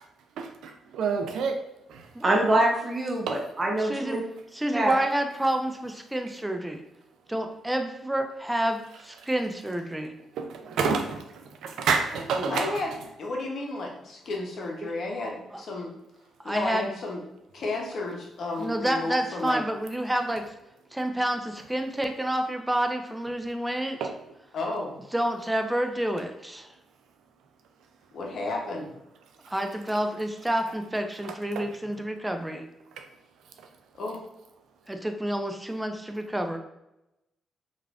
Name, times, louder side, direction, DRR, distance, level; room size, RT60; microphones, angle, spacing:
voice 1, 0.4-1.6 1.9-2.1 3.3-3.4 10.4-12.8 24.0-24.1 29.4-29.5 31.6-31.7 33.0-33.1, right 5 dB, 75° right, 0.3 m, -29 dB
voice 2, 2.2-4.2 4.7-4.9 12.4-12.5, right 1 dB, 30° right, 0.8 m, -24 dB
voice 3, 3.8-4.2 4.5-6.8 7.3-10.1 15.5-15.6 16.4-16.9 18.6-20.5 20.9-24.0 25.1-26.7 29.5-32.6 34.9-36.6, right 1 dB, 10° right, 0.4 m, -29 dB
voice 4, 12.5-15.9 16.4-17.2 17.5-19.6 24.5-25.0 28.1-28.9 33.9-34.2, left 2 dB, 65° left, 0.7 m, -32 dB
3.1 x 2.4 x 2.4 m
supercardioid pair, 50°, 0 cm